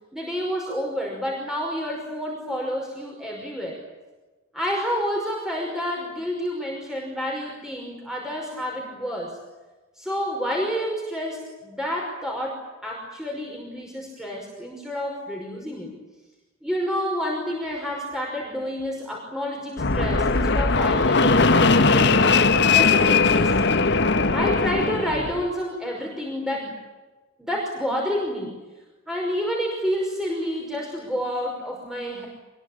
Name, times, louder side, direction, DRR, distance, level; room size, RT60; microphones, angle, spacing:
voice 1, 0.1-3.8 4.5-9.4 10.0-15.9 16.6-22.4 22.7-23.5 24.3-26.8 27.4-28.5 29.1-32.3, equal, 5° right, -1 dB, 5.5 m, -29 dB
Fixed-wing aircraft airplane, 19.8-25.4, left 4 dB, 55° left, 1.5 m, -19 dB
26.5 x 22.0 x 8.9 m, 1.2 s
head